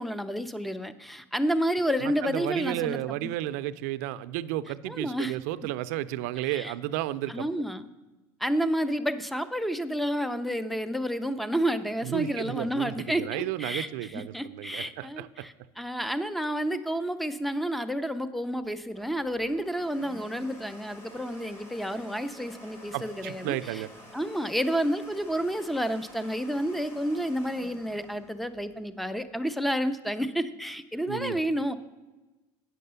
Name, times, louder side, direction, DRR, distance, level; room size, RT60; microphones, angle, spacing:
voice 1, 0.0-3.3 4.9-5.3 6.4-6.7 7.3-7.9 8.4-23.8 24.1-31.8, equal, ahead, 13 dB, 0.5 m, -30 dB
voice 2, 2.0-7.5 12.0-15.5 22.9-23.9 31.1-31.4, right 14 dB, 85° right, 13 dB, 0.5 m, -33 dB
Domestic sounds home sounds, 18.6-29.3, left 1 dB, 30° left, 2.0 m, -49 dB
9.3 x 6.5 x 6.8 m, 1.1 s
cardioid pair, 145°, 9 cm